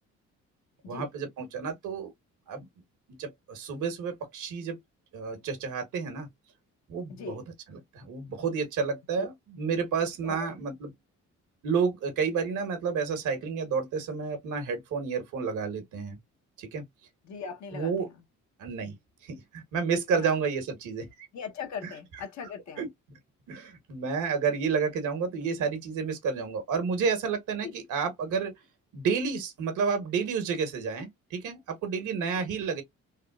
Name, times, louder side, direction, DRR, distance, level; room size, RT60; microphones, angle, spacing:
voice 1, 0.9-2.1 2.5-2.7 3.1-4.8 5.1-6.3 6.9-7.4 7.7-10.9 11.6-16.2 16.6-16.8 17.7-18.1 18.6-19.0 19.2-21.3 21.8-21.9 22.8-22.9 23.5-28.5 28.9-32.8, right 5 dB, 80° right, 1.2 m, -30 dB
voice 2, 7.1-7.4 9.2-9.3 10.2-10.4 17.2-18.1 20.2-20.4 21.3-22.9 27.6-27.7, left 6 dB, 65° left, 0.9 m, -39 dB
3.6 x 2.2 x 2.3 m
cardioid pair, 90°, 30 cm